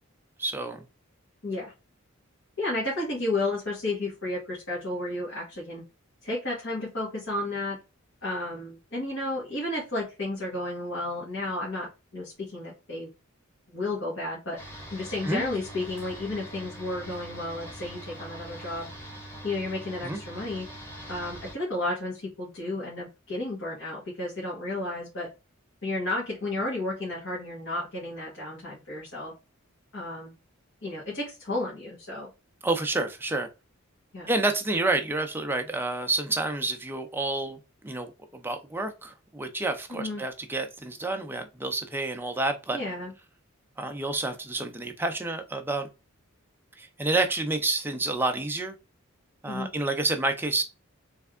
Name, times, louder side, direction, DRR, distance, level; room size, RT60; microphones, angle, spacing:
voice 1, 0.4-0.8 15.2-15.4 20.0-20.2 32.6-33.5 34.3-42.8 43.8-45.9 46.8-48.8 49.4-50.6, right 2 dB, 10° right, 0.6 m, -29 dB
voice 2, 1.4-1.7 2.6-5.8 6.2-7.8 8.2-13.1 13.7-18.9 19.4-20.7 21.1-25.3 25.8-29.3 29.9-30.4 30.8-32.3 34.1-34.3 39.9-40.2 42.7-43.1 49.5-49.7, left 2 dB, 65° left, 1.8 m, -32 dB
sound 1, 14.6-21.5, right 1 dB, 10° left, 1.2 m, -43 dB
3.4 x 3.4 x 3.6 m
head